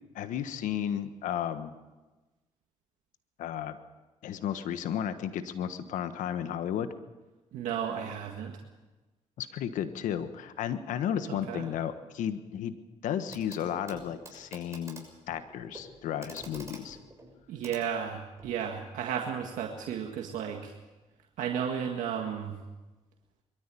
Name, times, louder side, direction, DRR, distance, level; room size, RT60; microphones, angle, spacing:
voice 1, 0.1-1.7 3.4-3.8 4.2-6.9 9.4-12.7 13.0-17.0, left 9 dB, 85° left, 10 dB, 1.3 m, -33 dB
voice 2, 7.5-8.6 11.3-11.7 17.5-20.7 21.4-22.6, right 8 dB, 90° right, 2 dB, 1.8 m, -34 dB
Clock, 13.3-13.6 13.9-18.6 19.8-19.9, right 2 dB, 20° right, 6.7 m, -49 dB
22.5 x 14.0 x 8.5 m, 1.1 s
cardioid pair, 65°, 13 cm